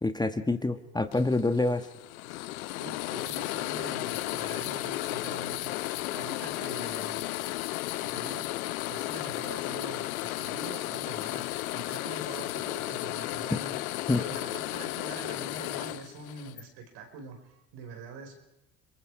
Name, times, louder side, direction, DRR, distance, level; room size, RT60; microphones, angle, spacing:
voice 1, 0.0-1.8 13.5-13.6 14.1-14.2, left 2 dB, 10° left, 8 dB, 1.4 m, -26 dB
sound 1, 1.1-16.6, left 18 dB, 90° left, 0.7 m, -34 dB
voice 2, 2.8-7.2 7.9-11.5 11.7-13.8 14.1-18.4, right 4 dB, 70° right, 4 dB, 4.8 m, -44 dB
29.5 x 20.5 x 4.8 m, 0.88 s
supercardioid pair, 80°, 41 cm